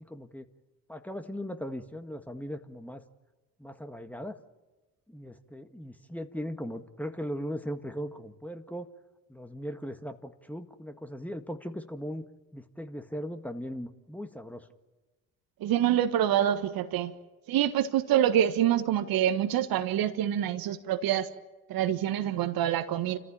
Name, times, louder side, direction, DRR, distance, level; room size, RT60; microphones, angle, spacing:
voice 1, 0.1-0.5 0.9-3.0 3.6-4.4 5.1-8.9 9.3-12.2 12.5-14.7, equal, 5° left, 7 dB, 1.8 m, -38 dB
voice 2, 15.6-17.1 17.5-21.3 21.7-23.2, right 11 dB, 60° right, 10 dB, 1.5 m, -26 dB
29.0 x 14.5 x 8.8 m, 1.2 s
hypercardioid pair, 55°, 41 cm